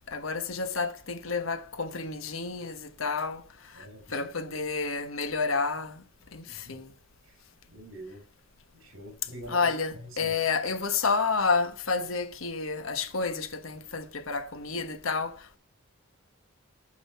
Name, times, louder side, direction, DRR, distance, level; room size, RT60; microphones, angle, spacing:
voice 1, 0.1-6.0 6.3-6.9 9.5-15.6, left 4 dB, 80° left, 1.2 m, -30 dB
voice 2, 3.7-4.3 6.5-6.8 7.3-7.4 7.7-8.2 8.7-10.3, equal, 75° right, 3.2 m, -46 dB
8.8 x 6.5 x 5.5 m
head